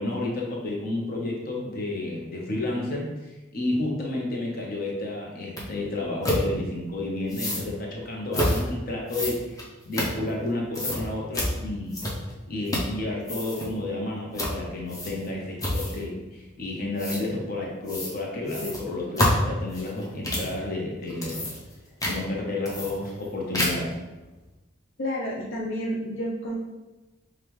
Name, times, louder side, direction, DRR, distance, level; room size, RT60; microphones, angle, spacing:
voice 1, 0.0-3.1 3.5-12.0 12.5-21.5 22.0-23.9, left 2 dB, 45° left, -2 dB, 0.9 m, -31 dB
sound 1, 5.6-5.7 6.2-6.4 7.3-7.7 8.3-8.6 9.1-10.5 10.7-11.0 11.3-11.5 11.9-12.3 12.7-13.0 13.2-13.7 14.4-14.6 14.9-15.3 15.6-16.0 17.0-17.2 17.9-18.2 18.5-20.5 21.0-21.7 22.0-22.2 22.7-23.3 23.5-23.9, left 1 dB, 15° left, 0.7 m, -28 dB
voice 2, 25.0-26.5, equal, 70° left, -3 dB, 0.6 m, -30 dB
5.2 x 2.4 x 3.1 m, 1.1 s
head